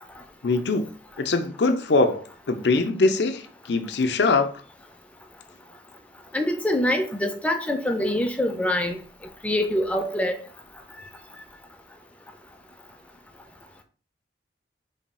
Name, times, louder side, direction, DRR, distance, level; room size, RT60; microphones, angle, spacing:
voice 1, 0.4-0.9 1.2-4.5, left 3 dB, 65° left, 0.5 m, -22 dB
voice 2, 6.3-9.0 9.4-10.3, left 1 dB, 10° left, 0.4 m, -24 dB
3.3 x 2.3 x 4.1 m
head